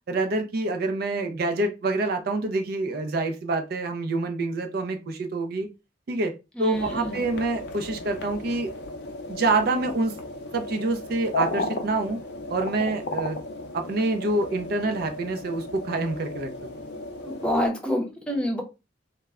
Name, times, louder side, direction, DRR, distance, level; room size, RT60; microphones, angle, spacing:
voice 1, 0.1-5.7 6.1-6.3 6.6-8.7 9.3-10.1 10.5-12.2 12.5-13.4 13.7-16.5, right 2 dB, 55° right, 0.4 m, -26 dB
voice 2, 6.6-7.2 17.2-18.6, equal, 5° left, 0.6 m, -27 dB
sound 1, 6.7-17.7, left 2 dB, 65° left, 0.5 m, -35 dB
2.1 x 2.0 x 3.5 m
head